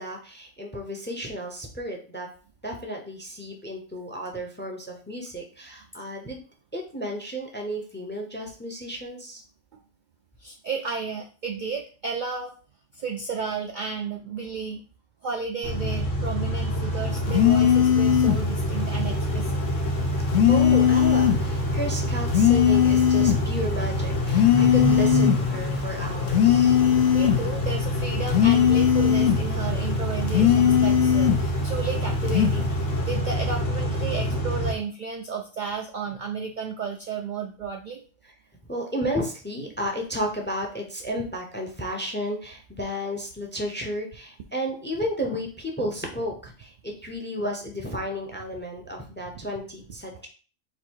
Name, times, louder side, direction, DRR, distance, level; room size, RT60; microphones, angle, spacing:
voice 1, 0.0-2.3 2.6-6.4 6.7-9.4 20.5-26.8 34.3-34.4 38.6-50.3, equal, 10° left, 2 dB, 0.6 m, -33 dB
voice 2, 10.4-12.5 12.9-14.8 15.2-19.6 27.1-38.0, right 5 dB, 60° right, 3 dB, 0.5 m, -33 dB
Car / Idling / Accelerating revving vroom, 15.6-34.7, equal, 45° left, 1.1 m, -27 dB
sound 1, 17.3-18.5 20.3-21.5 22.3-23.5 24.3-25.5 26.3-27.5 28.3-29.5 30.3-31.5 32.3-32.6, left 9 dB, 70° left, 0.9 m, -19 dB
4.1 x 2.7 x 4.5 m, 0.38 s
omnidirectional pair, 1.2 m